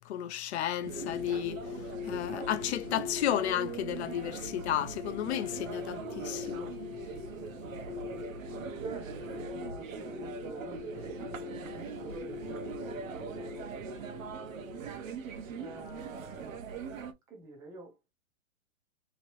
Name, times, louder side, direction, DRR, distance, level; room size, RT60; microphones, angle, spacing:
voice 1, 0.0-1.6 2.0-6.7, left 11 dB, 55° left, 0.5 m, -33 dB
sound 1, 0.8-17.1, right 6 dB, 70° right, 0.8 m, -41 dB
sound 2, 0.9-14.8, left 9 dB, 85° left, 1.0 m, -43 dB
voice 2, 8.5-14.9 15.6-16.6 17.3-18.1, right 3 dB, 10° right, 0.5 m, -48 dB
2.9 x 2.8 x 2.9 m
hypercardioid pair, 145°, 41 cm